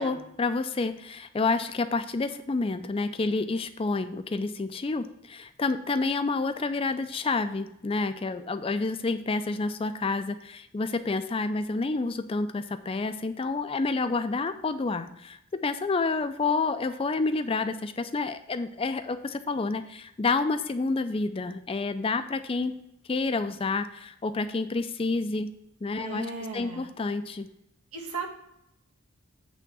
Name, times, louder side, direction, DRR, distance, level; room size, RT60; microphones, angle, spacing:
voice 1, 0.0-22.7 23.1-25.5 25.8-26.3 26.5-27.5, left 3 dB, 25° left, 10 dB, 0.3 m, -29 dB
voice 2, 26.0-26.9 27.9-28.3, right 3 dB, 85° right, 0 dB, 1.6 m, -36 dB
8.4 x 3.6 x 6.8 m, 0.81 s
head